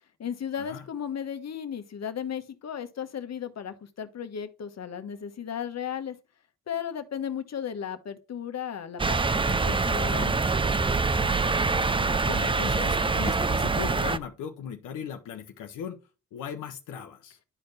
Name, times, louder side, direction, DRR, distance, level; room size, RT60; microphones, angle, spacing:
voice 1, 0.2-6.1 6.7-10.4, left 8 dB, 60° left, 1.2 m, -35 dB
sound 1, 9.0-14.2, right 4 dB, 15° right, 0.5 m, -25 dB
voice 2, 11.2-16.0 16.3-17.4, left 8 dB, 90° left, 0.9 m, -38 dB
11.0 x 4.4 x 3.3 m
supercardioid pair, 55°, 30 cm